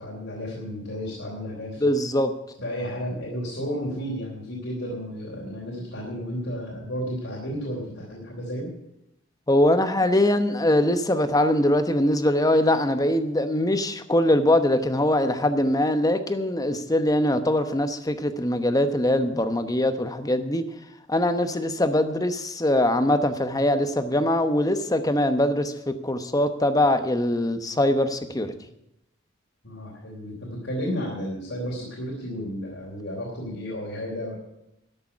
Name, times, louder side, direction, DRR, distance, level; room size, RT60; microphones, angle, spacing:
voice 1, 0.0-1.8 2.6-8.7 29.6-34.4, equal, 75° left, -4 dB, 3.3 m, -32 dB
voice 2, 1.8-2.3 9.5-20.6 21.1-28.5, left 1 dB, 20° left, 9 dB, 1.0 m, -22 dB
13.0 x 6.8 x 9.7 m, 0.84 s
head